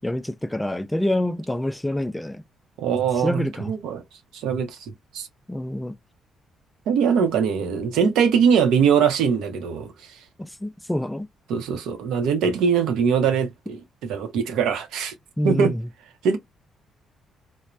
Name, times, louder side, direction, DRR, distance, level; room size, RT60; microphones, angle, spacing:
voice 1, 0.0-2.4 3.2-3.7 5.5-5.9 10.4-11.3 15.4-15.8, left 1 dB, 10° left, 0.3 m, -26 dB
voice 2, 2.8-4.0 4.3-5.3 6.9-9.9 11.5-15.1 15.4-15.7 16.2-16.4, right 7 dB, 90° right, 0.7 m, -22 dB
3.1 x 2.1 x 2.4 m
cardioid pair, 90°, 0 cm